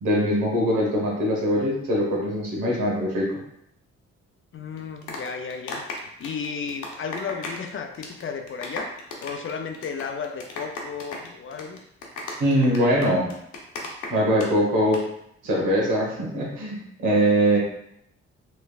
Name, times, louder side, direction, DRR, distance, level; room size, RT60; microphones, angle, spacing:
voice 1, 0.0-3.3 12.4-13.3 14.1-15.0 15.4-17.6, equal, 75° right, -3 dB, 1.2 m, -22 dB
voice 2, 4.5-5.8 6.2-8.9 9.2-11.8, left 6 dB, 45° left, 5 dB, 0.5 m, -33 dB
sound 1, 4.8-7.7 7.9-8.2 8.5-14.5 14.8-15.0, left 3 dB, 80° left, 0.7 m, -35 dB
3.2 x 3.2 x 2.3 m, 0.74 s
supercardioid pair, 50°, 30 cm